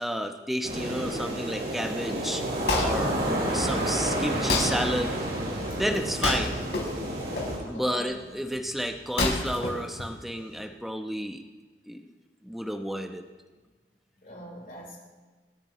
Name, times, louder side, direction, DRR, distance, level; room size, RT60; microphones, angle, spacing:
voice 1, 0.0-2.4 2.8-3.1 3.5-5.2 5.7-6.6 7.7-11.4 11.9-12.0 12.4-13.2, equal, ahead, 4 dB, 0.9 m, -31 dB
sound 1, 0.6-7.6, right 1 dB, 70° right, 5.5 m, -30 dB
Wood, 2.3-10.6, left 2 dB, 70° left, 4.3 m, -32 dB
voice 2, 7.7-8.1 14.1-15.0, equal, 50° left, -3 dB, 4.7 m, -44 dB
27.5 x 9.7 x 3.2 m, 1.3 s
head